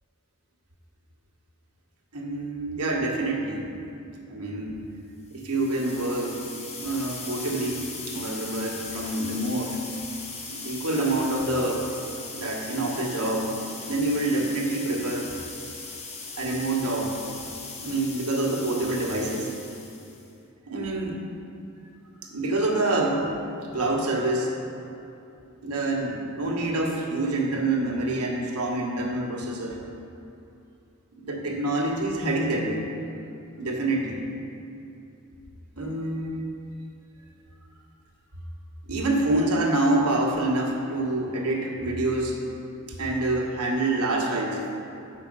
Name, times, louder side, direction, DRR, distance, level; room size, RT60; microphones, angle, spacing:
voice 1, 2.1-3.7 4.3-4.8 5.3-6.5 6.8-9.8 10.5-11.9 12.3-13.5 13.8-15.3 16.4-17.2 17.8-19.5 20.7-21.2 22.2-23.3 23.7-24.5 24.8-24.9 25.6-29.8 31.2-32.8 33.6-34.2 35.8-36.4 38.9-42.4 42.9-44.7, right 2 dB, 80° right, -1 dB, 1.3 m, -26 dB
sound 1, 5.3-20.3, left 4 dB, 30° left, 0.8 m, -39 dB
7.7 x 5.8 x 5.3 m, 2.7 s
head